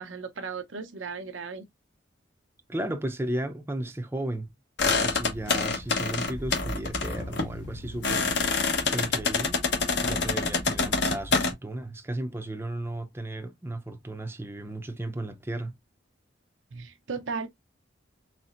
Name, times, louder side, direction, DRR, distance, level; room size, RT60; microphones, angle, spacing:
voice 1, 0.0-1.7 16.7-17.5, right 5 dB, 85° right, 0.8 m, -36 dB
voice 2, 2.7-4.5 4.8-8.3 8.8-9.6 10.0-15.7, right 1 dB, 10° right, 0.6 m, -34 dB
sound 1, 4.8-11.5, left 4 dB, 60° left, 1.2 m, -27 dB
4.2 x 4.0 x 2.5 m
head